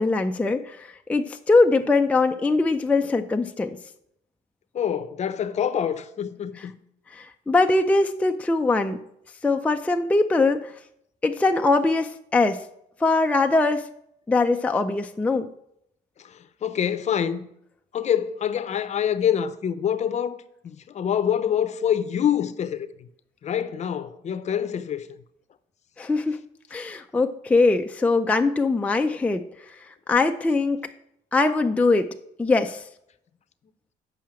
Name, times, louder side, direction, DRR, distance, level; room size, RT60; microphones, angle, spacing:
voice 1, 0.0-3.8 6.6-6.7 7.1-9.0 9.4-10.7 11.2-12.6 13.0-13.8 14.3-15.5 26.0-26.4 26.7-29.4 30.1-30.8 31.3-32.1 32.4-32.8, left 3 dB, 10° left, 0.4 m, -22 dB
voice 2, 4.7-6.7 16.2-17.5 17.9-22.9 23.4-25.1, left 9 dB, 40° left, 0.7 m, -26 dB
7.3 x 5.6 x 7.5 m
cardioid pair, 110°, 17 cm